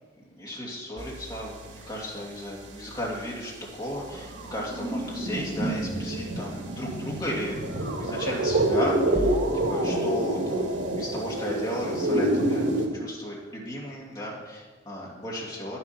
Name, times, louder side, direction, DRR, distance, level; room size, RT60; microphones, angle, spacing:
voice 1, 0.2-7.6 8.0-9.4 9.7-12.7 12.9-15.8, equal, 20° left, -4 dB, 2.5 m, -35 dB
sound 1, 1.0-2.5 2.8-12.9, right 1 dB, 85° right, 1.9 m, -28 dB
sound 2, 9.1-10.1, equal, ahead, 0.4 m, -33 dB
9.7 x 7.4 x 5.9 m, 1.3 s
head